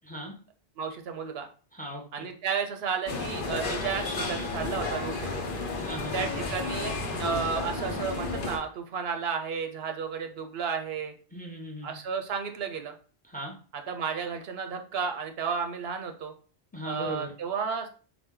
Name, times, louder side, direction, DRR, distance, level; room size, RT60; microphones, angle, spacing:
voice 1, 0.0-0.3 1.7-2.3 5.8-6.3 11.3-12.0 13.3-13.5 16.7-17.3, equal, 10° left, 0 dB, 0.7 m, -38 dB
voice 2, 0.8-1.5 2.1-5.5 6.1-6.9 7.2-11.1 11.8-12.9 13.9-16.3 16.8-17.9, right 6 dB, 70° right, 6 dB, 0.8 m, -32 dB
sound 1, 3.1-8.6, left 3 dB, 55° left, 0.9 m, -32 dB
4.2 x 2.2 x 3.6 m, 0.40 s
omnidirectional pair, 1.1 m